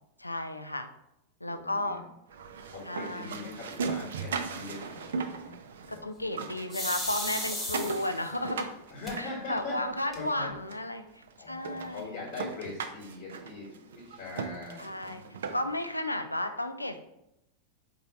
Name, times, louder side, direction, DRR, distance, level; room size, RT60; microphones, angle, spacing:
voice 1, 0.2-0.9 1.4-2.0 2.9-3.4 5.9-8.7 9.2-12.1 14.8-15.2 15.5-17.0, left 1 dB, 85° left, 8 dB, 0.4 m, -33 dB
voice 2, 1.4-2.1 2.7-5.6 5.9-6.0 8.9-9.8 10.1-10.5 11.4-15.6, left 3 dB, 50° left, -4 dB, 1.4 m, -42 dB
sound 1, 2.3-6.0 6.3-10.0 10.7-10.8 11.2-11.3 11.6-15.9, right 5 dB, 65° right, 0.4 m, -38 dB
sound 2, 6.7-8.3 9.1-9.2 9.6-9.7 9.9-10.5, left 1 dB, 10° left, 1.0 m, -35 dB
4.3 x 2.6 x 4.0 m, 0.84 s
figure-of-eight pair, 90°, 0 cm